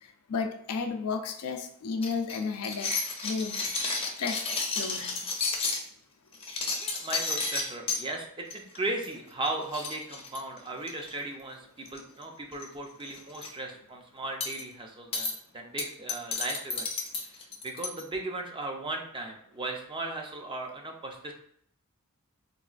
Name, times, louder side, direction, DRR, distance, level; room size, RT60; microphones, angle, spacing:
voice 1, 0.3-2.9 3.2-3.6 4.0-5.2, left 5 dB, 80° left, 5 dB, 0.4 m, -33 dB
sound 1, 2.0-5.8 6.3-8.0 8.5-8.8 9.0-9.2 9.4-9.5 9.7-11.1 11.9-12.2 12.5-12.7 13.1-13.5 14.4-14.6 15.1-15.3 15.8-18.0, left 4 dB, 25° left, 0.6 m, -32 dB
voice 2, 6.7-16.9 17.2-21.3, right 2 dB, 20° right, 2 dB, 0.5 m, -37 dB
4.0 x 2.3 x 2.4 m, 0.65 s
head